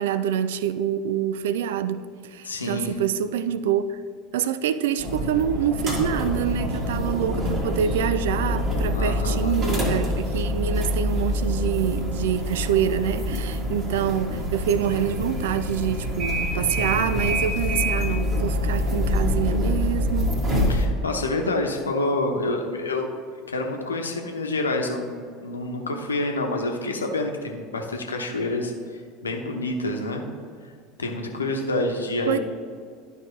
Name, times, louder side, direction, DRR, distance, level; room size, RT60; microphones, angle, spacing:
voice 1, 0.0-4.0 4.3-20.3 32.3-32.4, right 9 dB, 60° right, 0.4 m, -26 dB
voice 2, 2.4-3.0 8.9-9.5 20.7-23.1 23.5-30.2 31.0-32.4, left 2 dB, 75° left, 0.9 m, -28 dB
sound 1, 5.0-20.9, left 1 dB, 30° right, 1.6 m, -26 dB
11.5 x 5.4 x 3.2 m
figure-of-eight pair, 75°, 0 cm